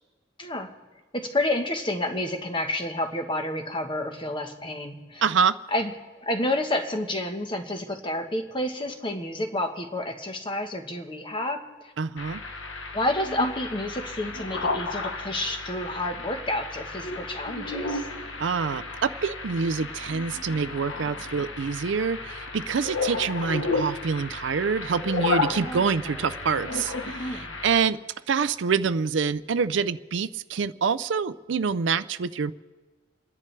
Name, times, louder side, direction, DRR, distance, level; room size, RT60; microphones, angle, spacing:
voice 1, 0.4-0.7 1.1-5.2 5.7-5.9 6.2-11.9 12.9-18.1 25.5-26.0 26.4-26.6 27.0-27.5, left 1 dB, 25° left, 5 dB, 1.2 m, -30 dB
voice 2, 5.2-5.6 12.0-12.4 18.4-28.0 28.3-32.5, right 5 dB, 70° right, 14 dB, 0.5 m, -26 dB
sound 1, 12.2-27.8, left 3 dB, 80° left, 1.3 m, -33 dB
29.5 x 10.5 x 3.3 m, 1.3 s
head